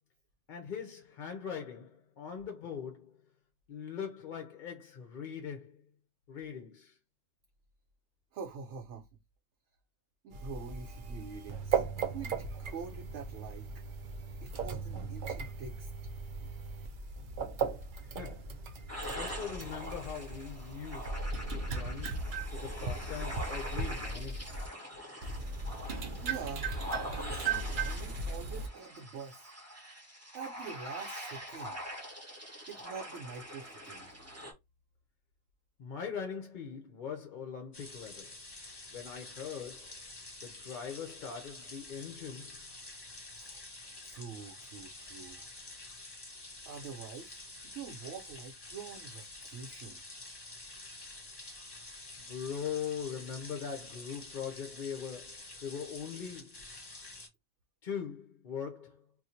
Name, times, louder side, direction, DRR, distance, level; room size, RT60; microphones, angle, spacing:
voice 1, 0.5-3.1 3.7-5.8 6.3-7.0 18.0-18.6 19.1-21.2 21.5-24.4 35.8-38.4 38.9-40.0 40.4-42.6 52.2-56.7 57.8-59.0, left 7 dB, 55° left, 0.6 m, -41 dB
voice 2, 8.3-9.1 10.2-13.7 14.4-15.9 26.1-26.7 27.1-29.5 30.3-31.8 32.7-34.1 43.3-43.7 44.0-45.5 46.6-50.0, right 6 dB, 90° right, 0.9 m, -45 dB
sound 1, 10.3-24.7 25.2-28.7, right 4 dB, 55° right, 0.6 m, -37 dB
sound 2, 18.9-34.5, equal, 15° right, 0.9 m, -44 dB
sound 3, 37.7-57.3, left 2 dB, 25° left, 0.9 m, -48 dB
2.6 x 2.4 x 4.1 m
omnidirectional pair, 1.2 m